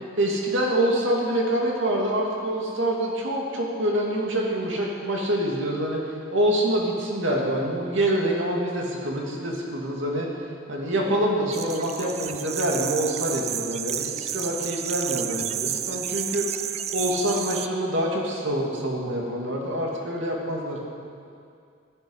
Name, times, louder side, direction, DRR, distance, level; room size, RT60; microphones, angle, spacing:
voice 1, 0.2-6.0 6.3-10.3 10.7-16.5 16.9-20.8, right 1 dB, 85° right, -2 dB, 2.5 m, -26 dB
sound 1, 11.5-17.7, right 9 dB, 35° right, 0.4 m, -31 dB
15.0 x 13.5 x 5.6 m, 2.4 s
head